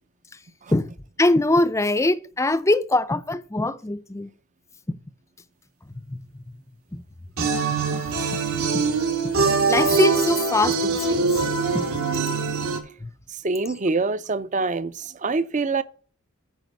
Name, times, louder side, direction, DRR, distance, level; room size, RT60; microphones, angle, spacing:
voice 1, 1.2-4.3 6.1-6.2 8.7-8.8 9.7-11.2 11.7-11.8, left 2 dB, 15° left, 0.5 m, -22 dB
sound 1, 7.4-12.8, right 4 dB, 75° right, 2.3 m, -23 dB
voice 2, 13.4-15.8, right 3 dB, 35° right, 0.5 m, -25 dB
9.2 x 5.1 x 6.3 m
head